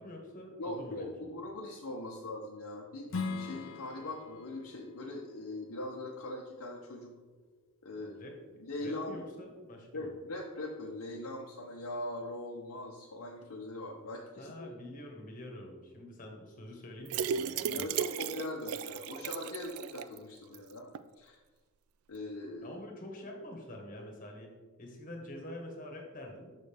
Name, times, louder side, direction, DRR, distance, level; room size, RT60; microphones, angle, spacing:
voice 1, 0.0-1.3 8.0-10.1 14.4-18.0 22.6-24.5 24.8-26.6, left 1 dB, 40° left, 1 dB, 1.4 m, -46 dB
voice 2, 0.6-7.1 7.8-8.2 8.6-9.2 9.9-14.7 17.7-20.9 21.2-21.4 22.1-22.8, left 2 dB, 90° left, -3 dB, 0.9 m, -41 dB
Strum, 3.1-8.3, left 4 dB, 60° left, 0.6 m, -43 dB
sound 1, 17.1-20.2 20.5-20.6 20.9-21.0, right 8 dB, 75° right, 0.3 m, -35 dB
6.4 x 6.4 x 3.4 m, 1.3 s
head